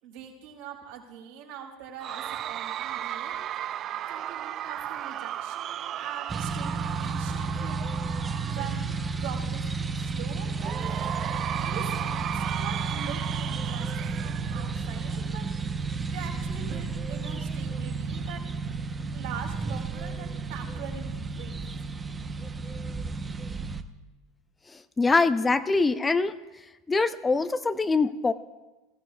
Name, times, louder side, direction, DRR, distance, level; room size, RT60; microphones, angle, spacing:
voice 1, 0.0-3.4 4.1-8.2 8.5-8.8 9.2-10.5 11.4-15.7 16.1-18.4 19.1-21.1 21.3-21.6, right 7 dB, 75° right, -2 dB, 4.1 m, -43 dB
Cheering / Crowd, 2.0-9.3 10.6-15.3, right 11 dB, 45° right, 0.3 m, -35 dB
sound 1, 6.3-23.8, right 4 dB, 20° right, 0.8 m, -32 dB
voice 2, 25.0-26.3 26.9-28.3, left 3 dB, 20° left, 12 dB, 0.5 m, -23 dB
20.0 x 15.0 x 2.3 m, 1.1 s
hypercardioid pair, 90°, 0 cm